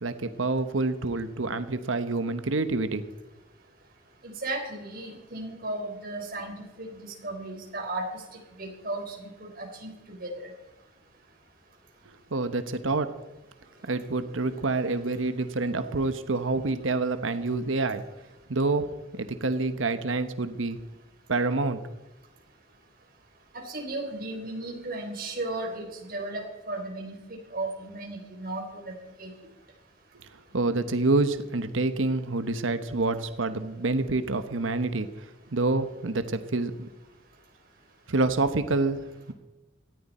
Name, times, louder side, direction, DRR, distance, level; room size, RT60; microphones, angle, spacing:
voice 1, 0.0-3.0 12.3-13.1 13.9-18.0 18.5-20.8 21.3-21.8 30.2-36.9 38.1-39.3, right 3 dB, 85° right, 10 dB, 1.1 m, -27 dB
voice 2, 4.2-10.5 23.7-28.9 29.2-29.3, right 2 dB, 50° right, 1 dB, 4.0 m, -35 dB
18.0 x 14.0 x 4.3 m, 1.1 s
head